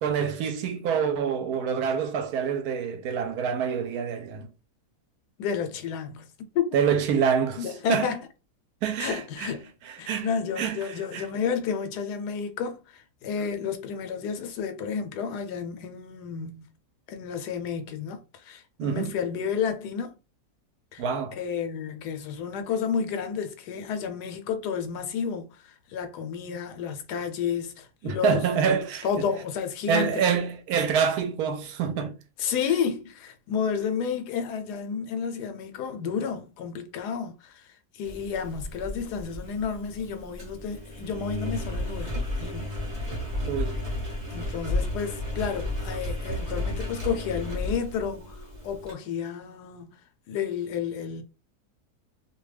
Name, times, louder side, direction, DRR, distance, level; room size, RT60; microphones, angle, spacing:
voice 1, 0.0-4.5 6.7-8.1 8.8-9.5 10.1-10.3 10.6-11.2 18.8-19.1 21.0-21.4 28.0-29.2 29.9-32.2 43.5-43.8, right 7 dB, 75° right, 1.1 m, -26 dB
voice 2, 5.4-6.3 6.5-6.7 7.6-8.3 9.0-9.7 10.0-16.7 17.1-20.2 20.9-21.0 21.3-28.4 28.7-30.2 32.4-37.7 37.9-42.7 44.3-49.9 50.3-51.2, left 7 dB, 85° left, 1.2 m, -31 dB
Engine, 38.0-48.9, left 1 dB, 35° right, 0.7 m, -33 dB
2.7 x 2.2 x 3.2 m
omnidirectional pair, 1.7 m